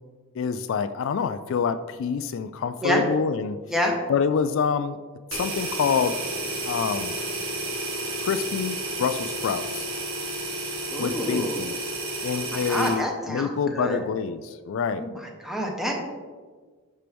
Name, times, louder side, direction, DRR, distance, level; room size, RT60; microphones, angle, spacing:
voice 1, 0.4-3.6 4.1-5.0 5.3-6.2 6.6-7.2 8.2-9.9 11.0-11.8 12.2-15.1, left 6 dB, 60° left, 11 dB, 0.3 m, -26 dB
sound 1, 5.3-13.0, right 2 dB, 75° right, 1.9 m, -31 dB
voice 2, 10.9-11.6 12.5-14.0 15.0-15.1 15.4-16.0, equal, ahead, 0 dB, 1.1 m, -27 dB
11.0 x 4.5 x 3.4 m, 1.5 s
head